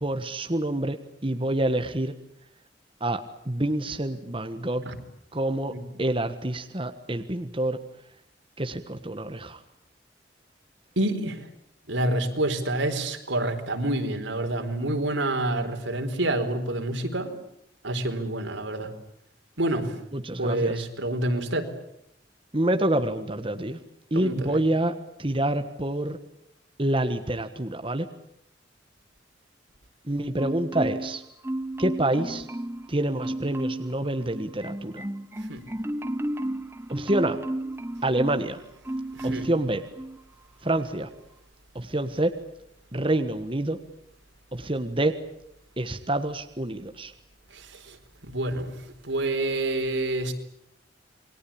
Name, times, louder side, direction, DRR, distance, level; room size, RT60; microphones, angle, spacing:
voice 1, 0.0-1.0 1.2-2.1 3.0-4.8 5.3-5.7 6.0-7.8 8.6-9.6 20.1-20.8 22.5-23.8 24.1-26.2 26.8-28.1 30.1-31.2 31.8-32.4 32.9-35.0 36.9-37.4 38.0-38.6 39.2-39.8 40.6-41.1 41.7-42.3 42.9-43.8 44.5-45.1 45.8-47.1, right 1 dB, 30° right, 7 dB, 1.4 m, -27 dB
voice 2, 11.0-11.5 11.9-17.3 17.8-18.9 19.6-20.0 20.4-21.7 24.1-24.6 35.5-35.6 39.1-39.5 47.5-48.0 48.2-50.3, right 1 dB, 85° right, 5 dB, 4.2 m, -28 dB
Marimba xylophone, 30.4-31.2 31.4-32.9 33.2-33.9 34.3-38.5 38.8-39.6 40.0-40.2, right 1 dB, 15° right, 1.0 m, -32 dB
28.5 x 22.0 x 8.7 m, 0.76 s
head